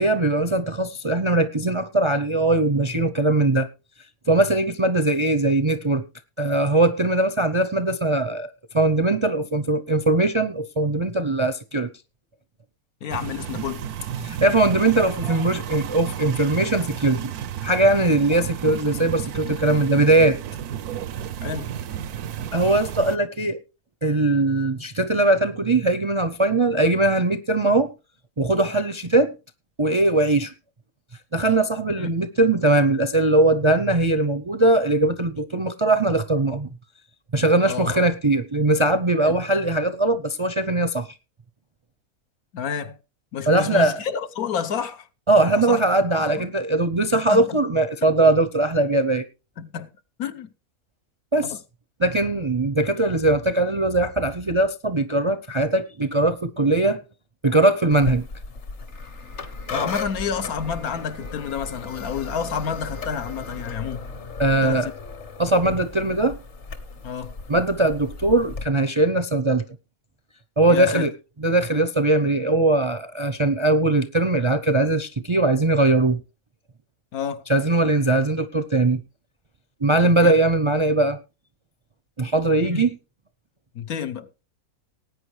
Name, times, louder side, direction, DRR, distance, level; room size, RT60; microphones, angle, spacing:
voice 1, 0.0-3.7 4.3-6.1 6.4-8.5 8.7-11.9 14.2-17.3 17.6-20.4 22.5-23.6 24.0-27.9 28.4-29.3 29.8-30.5 31.3-36.7 37.3-41.1 43.5-44.0 45.3-49.2 51.3-51.6 52.0-57.0 57.4-58.3 64.4-64.9 65.4-66.4 67.5-69.6 70.6-71.1 71.4-76.2 77.5-79.0 79.8-81.2 82.2-83.0, right 2 dB, 35° right, 0.5 m, -20 dB
voice 2, 13.0-13.8 21.4-21.7 32.0-32.1 37.6-38.1 39.2-39.4 42.5-43.0 43.3-45.1 45.4-45.8 46.2-46.5 47.1-47.6 49.6-49.9 50.2-50.5 51.4-51.6 59.7-64.0 64.6-64.9 67.0-67.4 70.7-71.1 77.1-77.4 80.2-80.4 82.6-82.8 83.7-84.3, left 7 dB, 75° left, 1.5 m, -29 dB
sound 1, 13.1-23.2, right 9 dB, 85° right, 1.3 m, -32 dB
sound 2, 57.9-68.6, left 3 dB, 50° left, 1.6 m, -36 dB
19.0 x 9.0 x 3.2 m
omnidirectional pair, 1.5 m